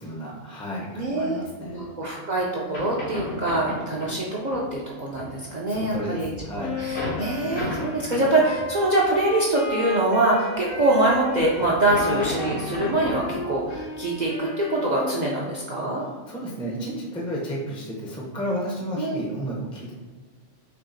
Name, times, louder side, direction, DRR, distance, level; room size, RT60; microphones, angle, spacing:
voice 1, 0.0-1.9 5.4-6.8 15.8-19.9, equal, 10° left, -3 dB, 0.3 m, -32 dB
voice 2, 0.9-6.3 6.5-16.0 19.0-19.2, right 2 dB, 60° right, -4 dB, 0.5 m, -24 dB
sound 1, 2.1-2.2 2.5-2.6 2.7-4.2 4.5-4.6 5.1-8.7 9.0-9.3 10.1-10.7 11.1-14.3, left 1 dB, 85° left, 1.6 m, -34 dB
Wind instrument woodwind instrument, 6.6-15.6, left 3 dB, 60° left, 0.7 m, -33 dB
4.5 x 2.8 x 2.6 m, 1.3 s
omnidirectional pair, 1.3 m